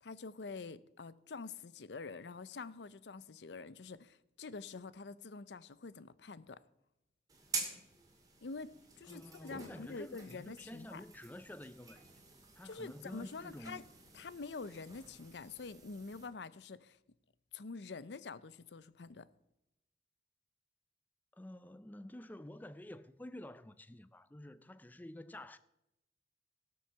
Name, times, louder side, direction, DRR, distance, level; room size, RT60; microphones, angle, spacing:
voice 1, 0.0-6.6 8.4-11.0 12.6-13.8 14.1-17.0 17.5-19.3, left 4 dB, 85° left, 0.6 m, -46 dB
sound 1, 7.3-16.3, right 4 dB, 20° right, 2.2 m, -48 dB
voice 2, 9.1-12.0 12.6-13.8 21.3-25.6, left 1 dB, 10° left, 0.4 m, -50 dB
17.5 x 6.3 x 6.8 m
head